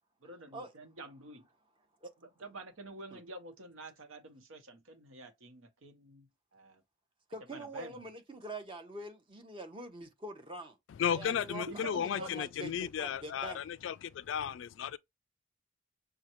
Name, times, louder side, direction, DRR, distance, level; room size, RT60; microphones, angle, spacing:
voice 1, 0.2-1.5 2.2-6.8 7.5-8.0 11.7-12.4, right 2 dB, 90° right, 0.9 m, -48 dB
voice 2, 7.3-10.8 11.1-13.6, right 2 dB, 25° right, 0.8 m, -44 dB
voice 3, 11.0-15.0, left 8 dB, 70° left, 0.3 m, -34 dB
6.3 x 2.2 x 3.0 m
head